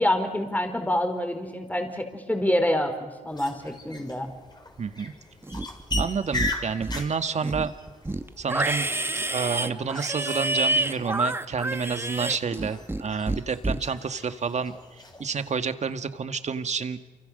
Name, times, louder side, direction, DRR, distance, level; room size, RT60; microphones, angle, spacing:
voice 1, 0.0-4.3, left 1 dB, 10° left, 6 dB, 4.4 m, -26 dB
sound 1, 3.3-15.6, left 2 dB, 30° left, 5.4 m, -39 dB
voice 2, 4.8-5.1 6.0-7.7 8.4-8.9 9.1-17.0, right 5 dB, 50° right, 10 dB, 1.8 m, -29 dB
Livestock farm animals working animals, 5.4-6.1 6.3-7.1 7.4-13.0 13.3-13.8, right 2 dB, 15° right, 1.5 m, -28 dB
28.5 x 25.0 x 6.7 m, 1.3 s
supercardioid pair, 55°, 15 cm